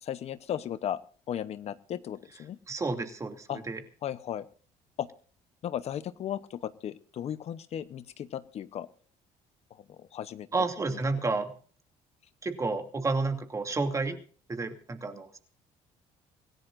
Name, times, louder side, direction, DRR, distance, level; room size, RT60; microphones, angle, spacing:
voice 1, 0.0-1.0 1.3-2.6 3.5-3.6 4.0-4.4 5.0-5.1 5.6-8.9 9.9-10.5, left 10 dB, 55° left, 13 dB, 0.9 m, -35 dB
voice 2, 2.7-3.8 10.5-11.5 12.4-14.2 14.5-15.4, right 3 dB, 25° right, 5 dB, 2.8 m, -30 dB
26.0 x 16.0 x 2.6 m, 0.42 s
cardioid pair, 120°, 13 cm